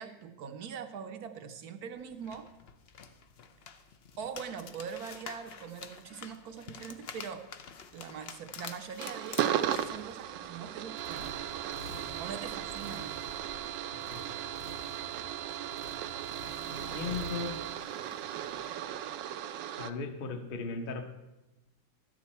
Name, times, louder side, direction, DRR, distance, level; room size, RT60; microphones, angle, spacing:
voice 1, 0.0-2.5 4.2-7.5 7.9-11.4 12.2-13.2, right 7 dB, 70° right, 8 dB, 1.0 m, -42 dB
sound 1, 2.0-9.9, left 6 dB, 85° left, 0.5 m, -48 dB
sound 2, 9.0-19.9, right 11 dB, 85° right, 1.3 m, -36 dB
sound 3, 9.5-19.2, left 3 dB, 65° left, 1.4 m, -50 dB
voice 2, 16.7-17.6 19.8-21.1, left 4 dB, 45° left, 5 dB, 0.8 m, -37 dB
12.5 x 9.0 x 4.2 m, 1.0 s
omnidirectional pair, 1.9 m